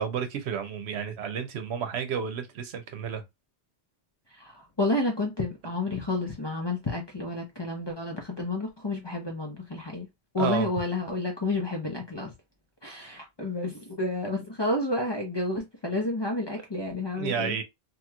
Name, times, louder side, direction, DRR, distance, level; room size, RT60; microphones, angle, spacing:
voice 1, 0.0-3.2 10.4-10.7 17.2-17.6, right 7 dB, 75° right, 0.9 m, -31 dB
voice 2, 4.4-10.1 10.3-12.3 12.8-17.6, left 2 dB, 30° left, 0.6 m, -30 dB
3.0 x 2.9 x 2.2 m
omnidirectional pair, 1.1 m